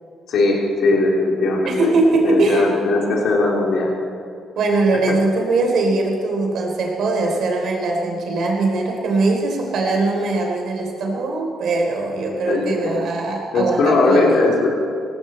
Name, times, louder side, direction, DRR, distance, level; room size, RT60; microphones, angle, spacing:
voice 1, 0.3-1.9 2.2-3.9 5.1-5.2 12.5-13.0 13.5-14.7, left 3 dB, 75° left, -1 dB, 3.3 m, -19 dB
voice 2, 1.6-2.7 4.6-14.4, right 2 dB, 70° right, 1 dB, 3.6 m, -21 dB
18.0 x 15.5 x 4.3 m, 2.5 s
cardioid pair, 90°, 0 cm